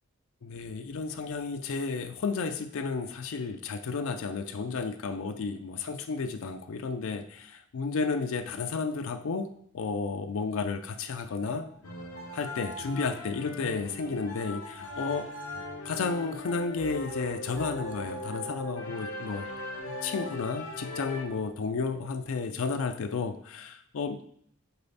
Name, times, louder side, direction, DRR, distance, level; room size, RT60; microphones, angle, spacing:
voice 1, 0.4-11.7 12.3-15.3 15.8-19.5 20.0-24.2, left 4 dB, 65° left, 7 dB, 0.4 m, -32 dB
sound 1, 11.4-18.8 19.8-22.7, right 1 dB, 70° right, 1.9 m, -47 dB
sound 2, 11.8-21.2, left 2 dB, 90° left, 0.9 m, -40 dB
6.7 x 4.8 x 4.0 m, 0.65 s
head